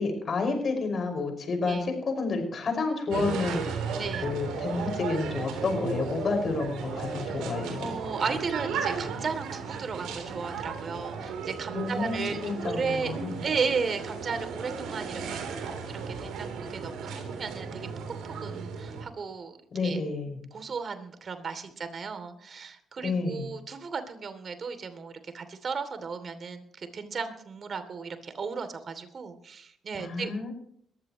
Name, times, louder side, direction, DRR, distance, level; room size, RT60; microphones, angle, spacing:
voice 1, 0.0-3.6 4.2-7.9 11.7-13.4 19.7-20.4 23.0-23.5 30.0-30.5, left 3 dB, 55° left, 4 dB, 5.8 m, -30 dB
sound 1, 3.1-19.0, right 5 dB, 85° right, 3.6 m, -35 dB
voice 2, 4.0-4.3 7.8-13.1 13.4-15.4 15.7-17.8 18.1-18.2 18.4-19.6 19.8-20.0 20.5-30.3, right 5 dB, 55° right, 9 dB, 2.9 m, -35 dB
21.5 x 15.0 x 3.1 m, 0.66 s
supercardioid pair, 55°, 0 cm